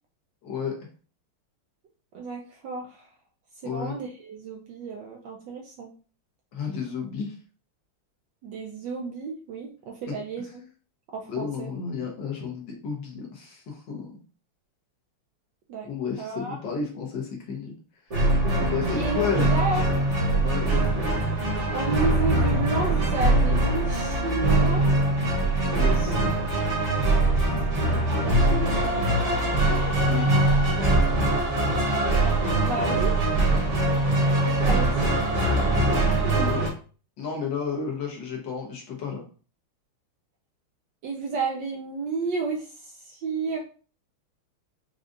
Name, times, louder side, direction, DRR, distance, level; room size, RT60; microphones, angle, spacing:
voice 1, 0.4-0.8 3.6-3.9 6.5-7.4 11.3-14.1 15.8-17.7 18.1-19.5 20.4-20.8 25.7-26.2 30.0-30.3 36.3-36.6 37.2-39.2, left 6 dB, 65° left, 0 dB, 1.4 m, -32 dB
voice 2, 2.1-3.1 3.6-5.9 8.4-10.6 11.1-11.7 15.7-15.9 16.2-16.6 18.9-19.8 21.7-24.8 27.8-28.8 32.6-33.1 34.6-35.1 41.0-43.6, right 3 dB, 75° right, 1 dB, 1.1 m, -31 dB
sound 1, 18.1-36.7, right 2 dB, 40° right, 1.2 m, -22 dB
5.0 x 2.3 x 2.6 m, 0.38 s
omnidirectional pair, 2.4 m